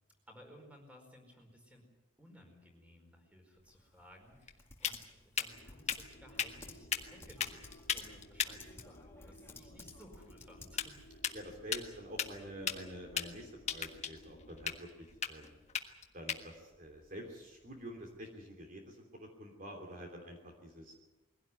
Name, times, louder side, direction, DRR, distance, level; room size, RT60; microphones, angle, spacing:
voice 1, 0.3-1.8 2.2-11.0, equal, 5° right, 3 dB, 4.8 m, -58 dB
sound 1, 3.5-18.3, left 7 dB, 30° left, 1.5 m, -41 dB
Typing, 3.7-11.1, left 3 dB, 10° left, 2.0 m, -55 dB
sound 2, 5.4-14.8, left 1 dB, 55° left, 2.5 m, -58 dB
voice 2, 11.3-15.6 16.1-20.9, equal, 40° right, 2 dB, 3.1 m, -48 dB
22.5 x 17.0 x 9.6 m, 1.1 s
head